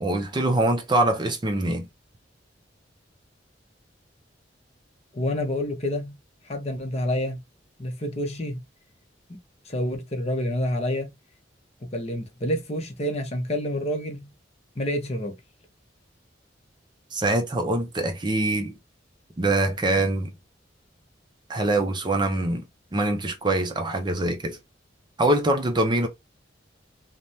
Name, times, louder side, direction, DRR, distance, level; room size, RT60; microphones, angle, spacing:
voice 1, 0.0-1.9 17.1-18.8 19.4-20.3 21.5-22.6 22.9-24.6 25.2-26.1, right 2 dB, 25° right, 0.5 m, -24 dB
voice 2, 5.1-6.2 6.4-7.4 7.8-8.6 9.3-9.4 9.7-11.1 11.8-14.3 14.8-15.4, left 1 dB, 35° left, 0.8 m, -28 dB
3.3 x 2.1 x 2.7 m
head